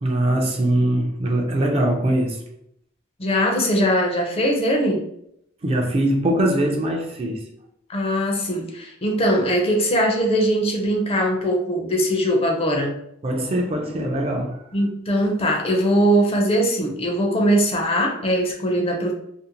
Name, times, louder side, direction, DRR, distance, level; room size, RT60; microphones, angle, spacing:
voice 1, 0.0-2.4 5.6-7.5 13.2-14.6, right 1 dB, 30° right, 0.4 m, -22 dB
voice 2, 3.2-5.0 7.9-12.9 14.7-19.1, equal, 30° left, 0.5 m, -21 dB
2.5 x 2.0 x 2.8 m
head